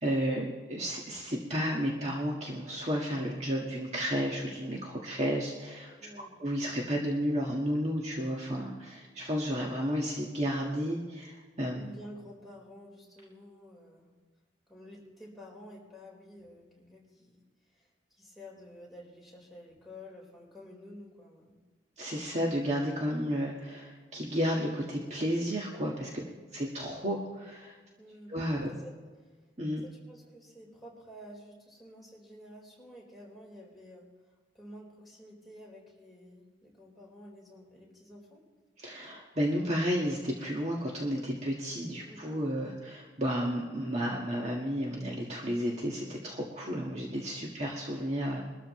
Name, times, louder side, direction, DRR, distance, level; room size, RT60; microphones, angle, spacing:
voice 1, 0.0-5.9 6.4-11.8 22.0-26.1 26.5-27.7 28.3-28.7 29.6-29.8 38.8-48.4, equal, 40° right, -2 dB, 1.6 m, -32 dB
voice 2, 5.9-6.4 11.7-14.1 14.7-17.4 17.7-21.6 26.1-26.4 28.0-28.3 28.7-29.0 29.8-34.1 34.5-38.4 42.0-42.4 47.6-47.8, equal, ahead, -3 dB, 4.3 m, -50 dB
23.5 x 13.0 x 3.1 m, 1.4 s
head